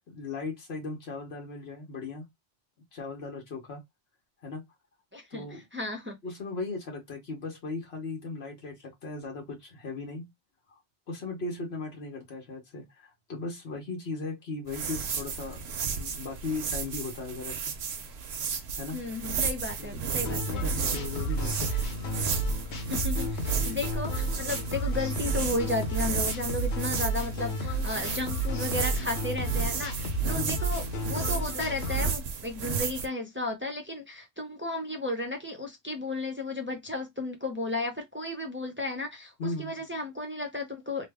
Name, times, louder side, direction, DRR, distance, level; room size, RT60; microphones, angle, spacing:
voice 1, 0.1-2.2 2.9-3.8 4.4-4.6 5.3-5.6 6.2-10.3 11.1-15.6 15.9-17.7 18.8-19.0 19.8-21.9 23.5-23.8 30.3-30.6 39.4-39.9, left 3 dB, 70° left, 1.3 m, -37 dB
voice 2, 5.1-6.2 18.9-20.6 22.7-39.3 39.6-41.1, left 2 dB, 15° right, 0.5 m, -34 dB
sound 1, 14.7-33.1, right 5 dB, 75° right, 0.9 m, -34 dB
sound 2, 20.2-32.1, right 1 dB, 85° left, 1.1 m, -31 dB
3.2 x 2.1 x 3.3 m
omnidirectional pair, 1.1 m